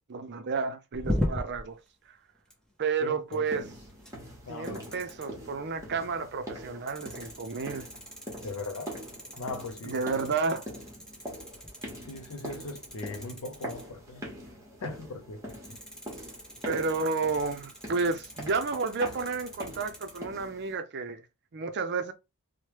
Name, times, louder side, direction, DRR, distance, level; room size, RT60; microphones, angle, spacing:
voice 1, 0.1-1.8 2.1-2.2 2.8-3.7 4.5-7.9 9.9-10.6 16.6-21.2 21.5-22.1, right 4 dB, 50° right, 0.5 m, -31 dB
sound 1, 0.9-1.7 2.4-2.7 3.3-3.4 3.9-4.4 4.6-5.3 6.9-13.9 15.5-20.2, equal, 5° left, 0.7 m, -39 dB
voice 2, 3.0-3.7 4.5-4.9 8.4-9.0 9.4-10.2 12.0-14.3 14.8-15.5, left 3 dB, 65° left, 0.5 m, -39 dB
sound 2, 3.5-20.8, equal, 15° right, 1.1 m, -44 dB
3.1 x 2.1 x 2.9 m
head